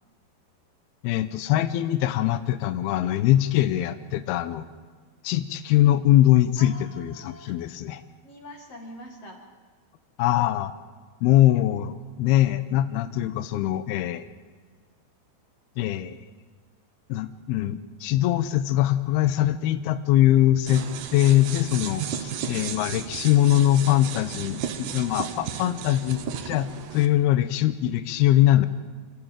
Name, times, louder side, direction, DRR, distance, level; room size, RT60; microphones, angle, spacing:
voice 1, 1.0-4.7 5.2-8.0 10.2-10.7 11.2-14.3 15.8-16.2 17.1-28.7, left 13 dB, 85° left, 11 dB, 2.3 m, -22 dB
voice 2, 6.6-7.5 8.2-9.4, left 1 dB, 45° left, 2 dB, 2.3 m, -45 dB
sound 1, 20.7-27.1, right 8 dB, 70° right, 2.0 m, -34 dB
27.0 x 14.0 x 9.1 m, 1.6 s
omnidirectional pair, 5.4 m